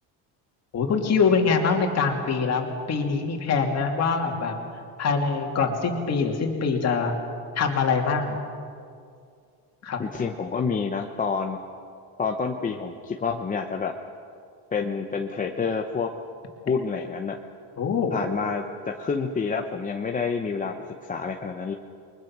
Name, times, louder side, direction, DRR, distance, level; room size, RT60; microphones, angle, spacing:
voice 1, 0.7-4.5 5.0-7.1 7.5-8.4 9.8-10.0 17.8-18.2, left 5 dB, 30° left, 2 dB, 2.9 m, -24 dB
voice 2, 10.0-11.6 12.2-13.9 14.7-16.1 16.7-17.4 18.1-20.7 21.0-21.7, left 5 dB, 15° left, 2 dB, 0.8 m, -28 dB
29.0 x 23.0 x 6.1 m, 2.4 s
cardioid pair, 160°, 48 cm